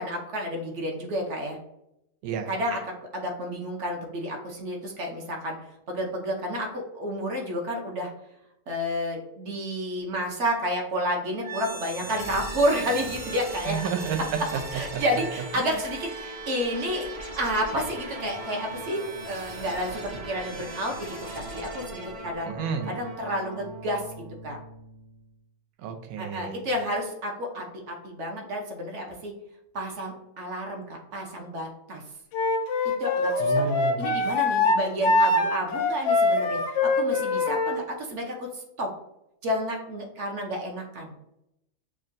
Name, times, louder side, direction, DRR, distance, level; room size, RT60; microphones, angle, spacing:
voice 1, 0.0-1.6 2.5-5.6 5.9-8.1 8.7-13.8 14.7-17.1 17.4-20.0 20.3-22.5 22.9-24.0 24.4-24.6 26.2-29.3 29.7-32.0 33.0-33.7 34.0-38.9 39.4-41.1, equal, 60° right, 1 dB, 1.0 m, -30 dB
sound 1, 11.4-25.3, right 2 dB, 40° right, 0.4 m, -38 dB
voice 2, 13.7-14.2 14.5-14.6 14.9-15.0 15.6-15.7 22.5-22.9 25.8-26.6 33.4-34.1, right 7 dB, 90° right, 4 dB, 1.1 m, -31 dB
Wind instrument woodwind instrument, 32.3-37.8, left 3 dB, 70° left, 0.8 m, -23 dB
6.2 x 2.2 x 2.5 m, 0.82 s
omnidirectional pair, 1.5 m